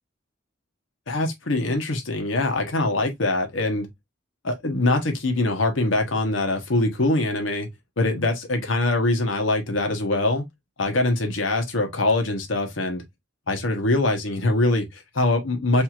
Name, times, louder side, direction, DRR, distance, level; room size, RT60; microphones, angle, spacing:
voice 1, 1.1-3.9 4.4-7.7 8.0-10.4 10.8-13.0 13.5-15.8, left 2 dB, 85° left, 1.0 m, -23 dB
4.4 x 2.7 x 2.4 m
head